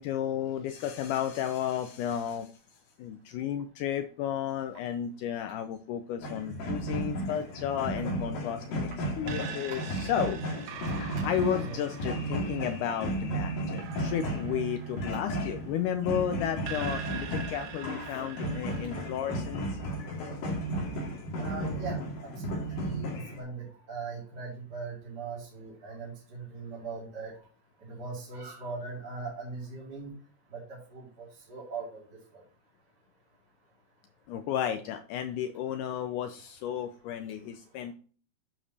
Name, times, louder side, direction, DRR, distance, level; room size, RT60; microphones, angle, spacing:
voice 1, 0.0-2.5 3.0-8.9 9.2-10.4 10.9-19.8 34.3-37.9, left 9 dB, 90° left, 8 dB, 1.8 m, -33 dB
sound 1, 6.2-23.4, right 1 dB, 60° left, 3.4 m, -34 dB
sound 2, 9.3-16.1 16.7-19.2, right 9 dB, 80° right, 2.3 m, -44 dB
voice 2, 21.4-27.3 27.8-30.1 30.5-32.0 32.3-32.4, right 4 dB, 35° right, -5 dB, 2.3 m, -40 dB
11.5 x 5.0 x 2.8 m, 0.40 s
omnidirectional pair, 4.3 m